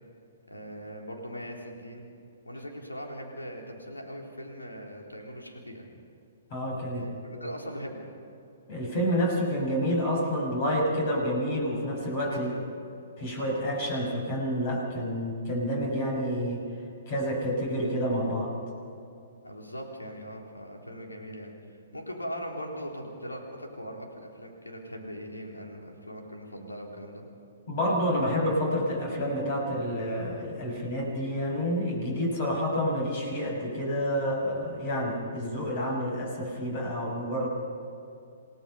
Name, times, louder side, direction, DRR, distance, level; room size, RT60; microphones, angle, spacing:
voice 1, 0.5-2.1 2.4-5.9 6.9-8.0 12.3-12.7 19.4-21.6 21.9-27.2, equal, 85° left, 0 dB, 3.7 m, -40 dB
voice 2, 6.5-7.1 7.3-7.5 8.7-12.5 13.2-16.6 17.1-18.5 27.7-37.5, equal, 40° left, 1 dB, 6.2 m, -29 dB
28.0 x 18.0 x 5.6 m, 2.6 s
figure-of-eight pair, 120°, 0 cm